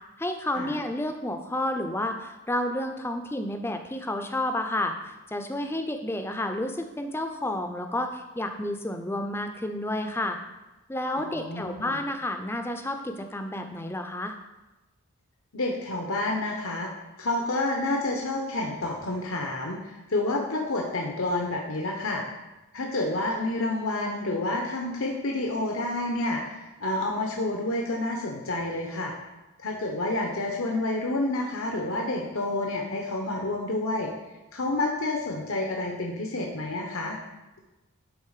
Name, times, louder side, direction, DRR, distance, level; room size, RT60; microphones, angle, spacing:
voice 1, 0.2-4.9 5.3-10.4 10.9-14.4, left 1 dB, 10° left, 6 dB, 0.5 m, -30 dB
voice 2, 11.2-12.0 15.5-16.9 17.2-22.2 22.7-29.1 29.6-34.1 34.5-37.2, left 2 dB, 75° left, 1 dB, 0.9 m, -29 dB
11.5 x 3.9 x 4.9 m, 1.1 s
head